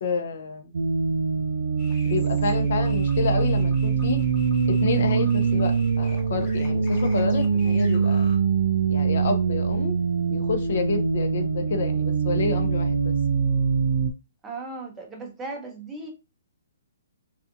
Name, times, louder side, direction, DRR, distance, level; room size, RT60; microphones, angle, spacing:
voice 1, 0.0-0.7 2.0-4.2 4.7-8.3 8.9-10.0 10.3-13.5, left 5 dB, 55° left, 0.5 m, -29 dB
sound 1, 0.7-14.1, right 5 dB, 85° right, 0.3 m, -23 dB
sound 2, 1.8-8.4, left 3 dB, 25° left, 0.8 m, -46 dB
voice 2, 14.4-16.1, right 3 dB, 10° right, 0.5 m, -36 dB
2.4 x 2.3 x 2.6 m
hypercardioid pair, 165°, 0 cm